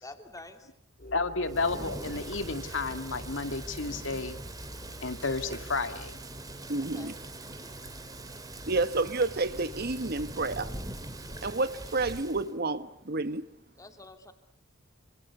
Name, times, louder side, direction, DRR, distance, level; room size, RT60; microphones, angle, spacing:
voice 1, 0.0-0.7 6.8-7.2 13.8-14.3, left 2 dB, 15° left, 2.9 m, -47 dB
sound 1, 1.0-6.5, left 1 dB, 45° left, 3.6 m, -47 dB
voice 2, 1.1-4.4 5.0-6.2, left 3 dB, 65° left, 2.1 m, -32 dB
Thunder / Rain, 1.4-12.5, right 1 dB, 20° right, 2.6 m, -42 dB
sound 2, 5.5-11.0, right 1 dB, 35° right, 2.4 m, -54 dB
voice 3, 6.7-7.1 8.7-10.7 11.4-13.5, right 3 dB, 50° right, 1.3 m, -30 dB
27.5 x 26.5 x 8.2 m
head